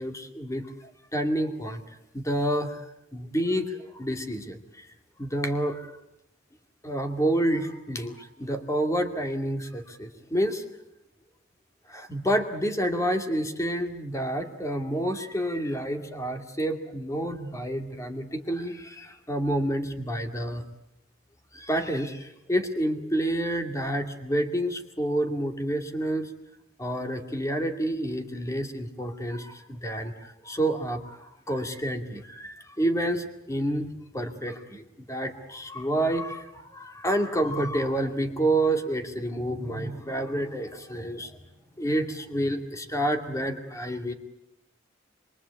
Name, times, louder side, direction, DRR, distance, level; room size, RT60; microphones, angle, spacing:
voice 1, 0.0-2.8 3.1-4.9 5.2-5.9 6.8-10.6 11.9-20.6 21.5-26.3 26.8-31.2 31.5-33.9 34.1-41.3 41.8-44.1, right 1 dB, 15° left, 6 dB, 2.3 m, -29 dB
25.5 x 23.0 x 8.4 m, 0.81 s
head